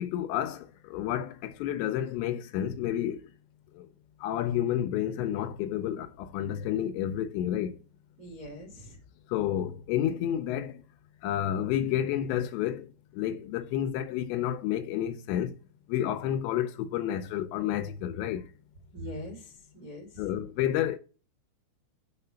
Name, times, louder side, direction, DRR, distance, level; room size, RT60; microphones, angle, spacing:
voice 1, 0.0-3.3 3.7-3.9 4.2-7.8 9.3-10.8 11.2-15.6 15.9-18.5 20.2-21.0, left 11 dB, 80° left, 2.7 m, -30 dB
voice 2, 8.2-9.0 18.9-20.2, equal, 75° right, 0.8 m, -42 dB
6.8 x 3.8 x 5.6 m
omnidirectional pair, 5.6 m